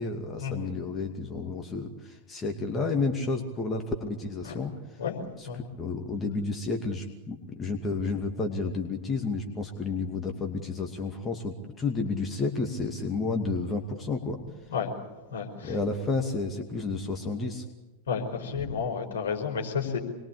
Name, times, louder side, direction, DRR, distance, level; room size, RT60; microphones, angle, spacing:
voice 1, 0.0-4.7 5.4-5.5 5.8-14.4 15.6-17.6, left 3 dB, 20° left, 3 dB, 2.5 m, -31 dB
voice 2, 15.3-15.8 18.1-20.0, left 6 dB, 65° left, 1 dB, 5.0 m, -31 dB
26.0 x 22.0 x 8.6 m, 1.1 s
figure-of-eight pair, 90°, 0 cm